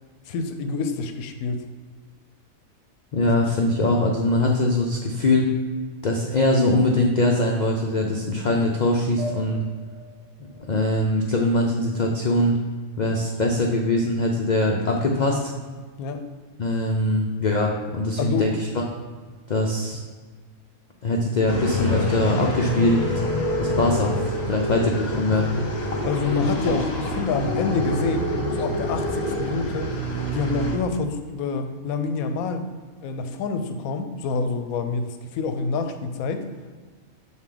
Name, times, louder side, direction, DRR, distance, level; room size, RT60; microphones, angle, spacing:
voice 1, 0.3-1.6 3.2-3.4 16.0-16.2 18.2-18.6 26.0-30.0 30.3-32.7 33.0-36.5, left 4 dB, 90° left, 8 dB, 1.0 m, -27 dB
voice 2, 3.1-5.5 6.0-9.6 10.7-12.6 13.0-15.5 16.6-18.5 19.5-20.0 21.0-23.2 23.6-25.5, left 2 dB, 75° left, 0 dB, 0.4 m, -22 dB
sound 1, 9.2-12.1, equal, 80° right, 1.0 m, -40 dB
sound 2, 21.5-30.8, equal, 35° left, 0.8 m, -26 dB
6.3 x 4.0 x 3.7 m, 1.5 s
omnidirectional pair, 1.5 m